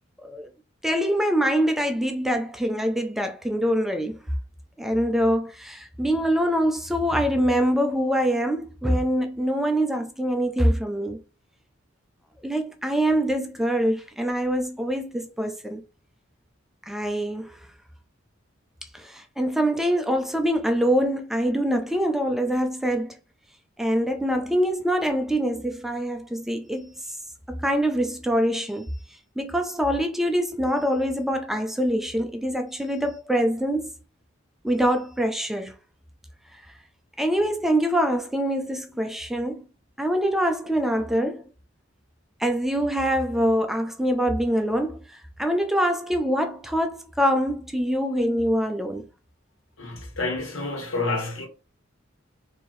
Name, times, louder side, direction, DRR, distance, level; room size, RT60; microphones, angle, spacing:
voice 1, 0.8-4.2 4.8-11.2 12.4-15.8 16.9-17.6 18.9-23.2 23.8-26.9 27.5-28.9 29.4-33.9 34.6-35.7 37.2-39.6 40.0-41.4 42.4-45.0 45.4-49.1, equal, ahead, 0.4 m, -24 dB
voice 2, 49.8-51.5, left 3 dB, 85° left, 1.4 m, -29 dB
4.2 x 2.7 x 3.1 m
head